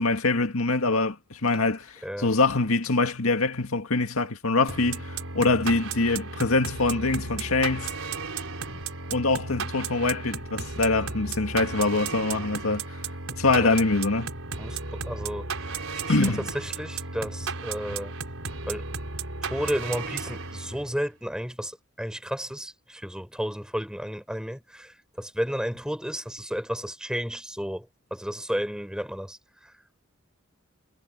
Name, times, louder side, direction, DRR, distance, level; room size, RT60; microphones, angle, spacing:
voice 1, 0.0-7.9 9.1-12.8 13.4-14.3 16.1-16.4, left 3 dB, 90° left, 2.0 m, -24 dB
sound 1, 4.7-21.0, right 4 dB, 85° right, 4.4 m, -34 dB
voice 2, 14.6-15.5 16.1-18.1 18.7-18.9 19.4-29.7, equal, 5° right, 5.5 m, -32 dB
head